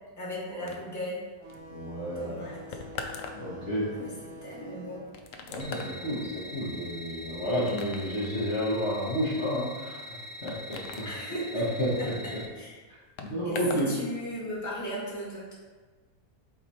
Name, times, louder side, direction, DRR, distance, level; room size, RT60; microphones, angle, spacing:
voice 1, 0.2-1.2 2.1-2.8 3.9-4.1 4.4-5.0 11.0-11.6 12.0-12.1 12.6-12.8 13.4-15.5, equal, 10° left, -6 dB, 1.5 m, -37 dB
sound 1, 0.7-14.0 14.2-14.8, left 4 dB, 65° left, 0.9 m, -44 dB
sound 2, 1.4-6.6, equal, 55° right, 1.2 m, -47 dB
voice 2, 1.7-2.4 3.3-3.9 5.5-10.0 10.4-11.3 11.5-12.4 12.9-14.0, equal, 50° left, -8 dB, 1.5 m, -31 dB
sound 3, 5.6-12.4, equal, 30° left, 0.5 m, -43 dB
8.4 x 3.3 x 4.3 m, 1.3 s
omnidirectional pair, 1.6 m